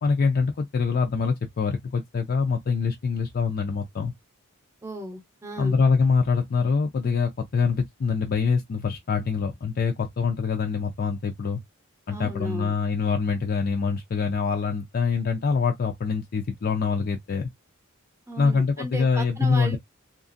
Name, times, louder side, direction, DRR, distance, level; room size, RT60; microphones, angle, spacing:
voice 1, 0.0-4.1 5.6-11.6 12.1-17.5 18.4-19.8, left 5 dB, 45° left, 0.4 m, -24 dB
voice 2, 4.8-5.8 12.1-12.7 18.3-19.8, right 1 dB, 15° right, 0.7 m, -35 dB
2.8 x 2.5 x 2.5 m
head